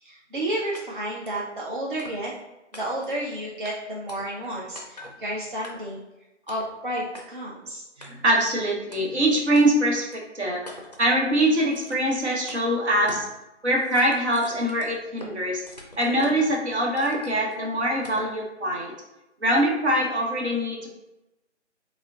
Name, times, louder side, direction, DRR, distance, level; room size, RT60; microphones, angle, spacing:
voice 1, 0.0-2.3 2.7-6.0 6.5-7.8, right 1 dB, 45° right, -5 dB, 0.5 m, -31 dB
sound 1, 0.7-0.8 1.3-1.4 2.0-2.4 2.7-3.2 3.6-3.7 4.1-4.5 4.8-5.2 5.6-6.0 6.5-6.7 7.1-7.2 8.0-8.4 8.9-9.0 9.6-9.7 10.1-10.2 10.7-11.1 11.7-12.1 12.5-12.6 13.1-13.3 13.6-15.3 15.7-16.5 17.0-17.6 18.0-18.3, left 1 dB, 35° left, 0.4 m, -43 dB
voice 2, 8.0-10.6 11.0-13.3 13.6-15.6 16.0-18.9 19.4-20.9, right 1 dB, 65° right, -2 dB, 1.0 m, -23 dB
5.0 x 2.2 x 2.3 m, 0.97 s
figure-of-eight pair, 155°, 36 cm